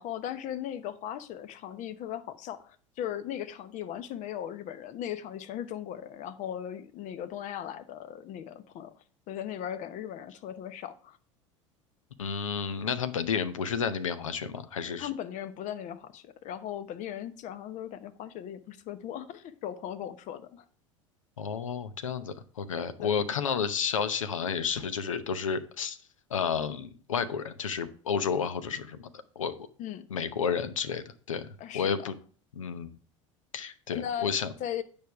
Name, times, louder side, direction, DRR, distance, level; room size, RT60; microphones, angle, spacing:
voice 1, 0.0-8.9 9.3-11.2 15.0-20.6 23.0-23.1 29.8-30.0 31.6-32.1 33.9-34.3 34.6-34.8, left 10 dB, 50° left, 13 dB, 0.9 m, -38 dB
voice 2, 12.2-15.1 21.4-26.0 26.3-29.0 29.4-29.5 30.1-31.5 31.7-32.1 32.6-32.9 33.5-34.5, left 6 dB, 85° left, 13 dB, 0.8 m, -31 dB
9.2 x 5.2 x 4.6 m, 0.43 s
hypercardioid pair, 75°, 16 cm